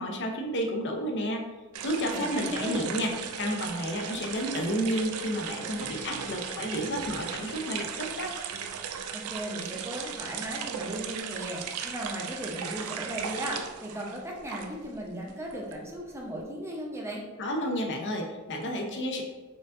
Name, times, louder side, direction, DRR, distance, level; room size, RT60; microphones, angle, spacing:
voice 1, 0.0-1.4 1.8-8.3 17.4-19.2, equal, 55° left, 2 dB, 0.7 m, -31 dB
sound 1, 1.7-14.9 15.2-16.4, right 7 dB, 85° right, 0.4 m, -37 dB
voice 2, 2.1-2.9 9.1-17.2, equal, 10° right, -2 dB, 0.6 m, -36 dB
sound 2, 5.8-10.0, equal, 90° left, 1.1 m, -50 dB
4.4 x 2.6 x 3.7 m, 1.2 s
head